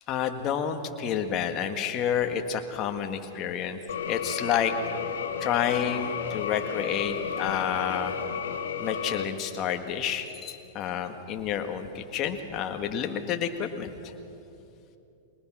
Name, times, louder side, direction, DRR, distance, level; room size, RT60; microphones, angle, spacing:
voice 1, 0.1-3.8 4.1-4.7 5.4-8.2 8.8-14.1, left 8 dB, 35° left, 6 dB, 1.7 m, -29 dB
sound 1, 3.9-9.2, left 6 dB, 80° left, 1.6 m, -32 dB
22.5 x 19.5 x 6.2 m, 2.8 s
hypercardioid pair, 135°, 0 cm